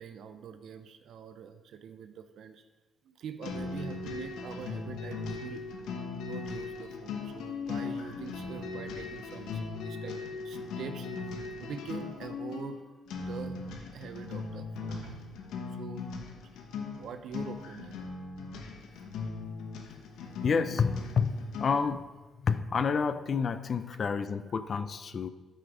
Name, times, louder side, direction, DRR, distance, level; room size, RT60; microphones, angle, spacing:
voice 1, 0.0-2.7 3.0-5.7 6.2-12.8 13.2-13.6 13.9-15.3 15.7-16.1 16.5-16.6 16.9-18.0, right 7 dB, 70° right, 9 dB, 0.5 m, -44 dB
sound 1, 3.4-22.0, left 4 dB, 85° left, 1.0 m, -39 dB
voice 2, 20.4-22.1 22.4-25.3, left 5 dB, 50° left, 12 dB, 0.4 m, -29 dB
8.7 x 5.0 x 4.9 m, 1.2 s
cardioid pair, 90°, 0 cm